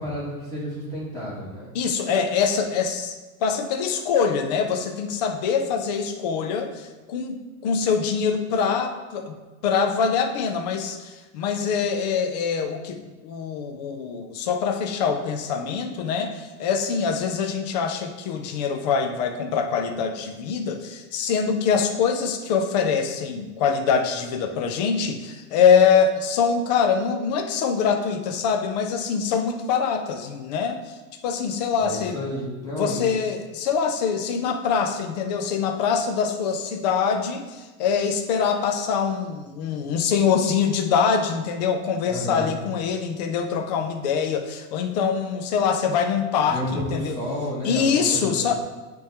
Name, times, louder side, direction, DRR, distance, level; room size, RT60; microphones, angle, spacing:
voice 1, 0.0-1.7 31.8-33.1 42.0-42.5 46.4-48.6, left 1 dB, 10° left, -10 dB, 2.0 m, -31 dB
voice 2, 1.7-9.4 9.6-31.0 31.2-32.2 32.7-47.1 47.6-48.5, left 6 dB, 30° left, 5 dB, 0.4 m, -24 dB
10.5 x 3.6 x 2.9 m, 1.2 s
supercardioid pair, 165°, 45 cm